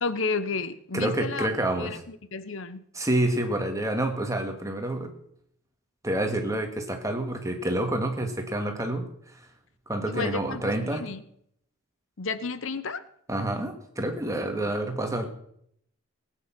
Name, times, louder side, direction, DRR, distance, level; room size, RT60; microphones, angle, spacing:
voice 1, 0.0-1.5 1.8-2.8 10.1-11.2 12.2-13.0, left 4 dB, 60° left, 14 dB, 0.9 m, -32 dB
voice 2, 0.9-2.0 2.9-5.1 6.0-9.5 9.9-11.1 13.3-15.3, right 1 dB, 15° right, 4 dB, 2.0 m, -28 dB
19.0 x 9.3 x 6.0 m, 0.69 s
head